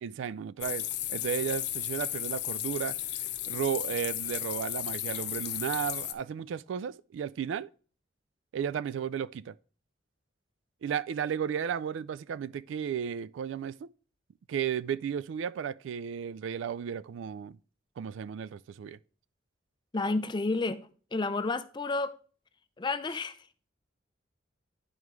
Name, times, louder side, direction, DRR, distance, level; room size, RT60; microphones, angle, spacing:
voice 1, 0.0-3.0 3.5-7.7 8.5-9.5 10.8-13.9 14.5-17.6 18.0-19.0, right 8 dB, 75° right, 0.3 m, -34 dB
sound 1, 0.6-6.1, left 12 dB, 60° left, 0.7 m, -34 dB
voice 2, 19.9-22.2 22.8-23.4, left 3 dB, 25° left, 0.4 m, -31 dB
11.0 x 4.8 x 3.1 m
head